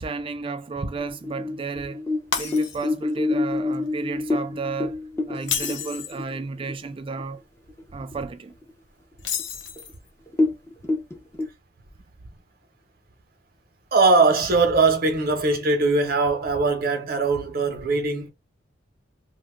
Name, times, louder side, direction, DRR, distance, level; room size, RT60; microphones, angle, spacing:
voice 1, 0.0-2.0 2.4-5.0 5.3-7.4 7.9-8.5, right 4 dB, 30° right, 0.4 m, -32 dB
sound 1, 1.0-6.8 7.2-7.3 7.7-8.2 8.6-8.7 9.4-9.5 9.8-9.9 10.3-11.5, left 2 dB, 15° left, 0.7 m, -27 dB
Shatter, 2.3-3.1 3.5-3.7 5.3-6.2 9.2-10.1, left 7 dB, 85° left, 0.6 m, -30 dB
voice 2, 13.9-18.3, right 3 dB, 55° right, 0.9 m, -21 dB
2.7 x 2.2 x 3.5 m
head